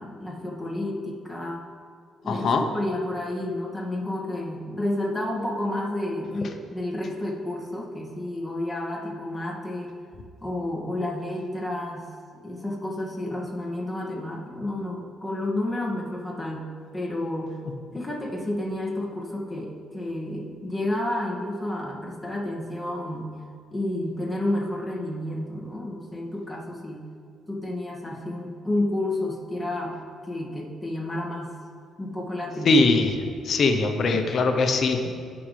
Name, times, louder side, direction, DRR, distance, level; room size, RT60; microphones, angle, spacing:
voice 1, 0.0-1.6 2.2-10.0 10.4-12.1 12.4-17.6 17.9-23.4 23.7-27.1 27.5-31.6 32.0-32.8, left 1 dB, 5° left, -4 dB, 2.2 m, -30 dB
voice 2, 2.3-2.6 32.6-33.1 33.4-35.1, left 3 dB, 55° left, 5 dB, 0.9 m, -21 dB
17.0 x 6.3 x 3.4 m, 2.2 s
cardioid pair, 95°, 0 cm